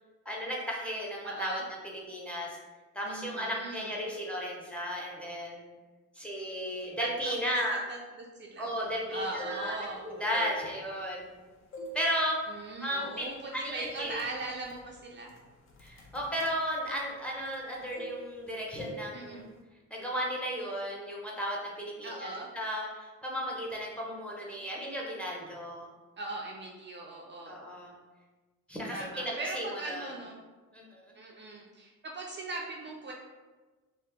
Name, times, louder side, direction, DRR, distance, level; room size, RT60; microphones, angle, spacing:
voice 1, 0.3-2.6 2.9-5.7 6.1-7.8 8.6-9.7 10.0-11.3 11.9-12.4 12.8-14.2 15.8-19.5 19.9-25.9 27.5-27.9 28.7-30.1 30.7-31.0, equal, 5° left, -3 dB, 0.7 m, -35 dB
voice 2, 1.2-1.6 3.0-3.9 7.0-8.7 9.1-10.1 12.5-15.3 19.1-19.5 22.0-22.5 26.2-27.6 28.9-30.4 31.2-33.1, right 2 dB, 40° right, -1 dB, 0.4 m, -40 dB
sound 1, 9.2-9.9 10.3-11.3 11.7-12.1 12.4-12.7 13.3-13.5 13.8-17.6 17.9-18.5 18.8-19.1 19.3-19.6, right 1 dB, 45° left, 0.6 m, -44 dB
2.9 x 2.0 x 3.3 m, 1.3 s
cardioid pair, 90°, 30 cm